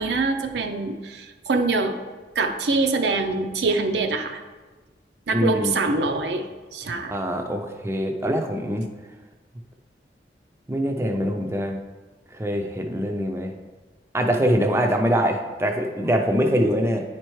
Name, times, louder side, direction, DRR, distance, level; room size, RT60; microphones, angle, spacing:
voice 1, 0.0-1.9 2.4-4.4 5.3-6.4 6.7-7.1, right 3 dB, 75° right, 5 dB, 0.5 m, -24 dB
voice 2, 5.3-5.7 7.1-8.9 10.7-11.8 12.3-13.5 14.1-17.0, equal, 15° right, 4 dB, 0.4 m, -23 dB
9.4 x 4.4 x 3.1 m, 1.3 s
head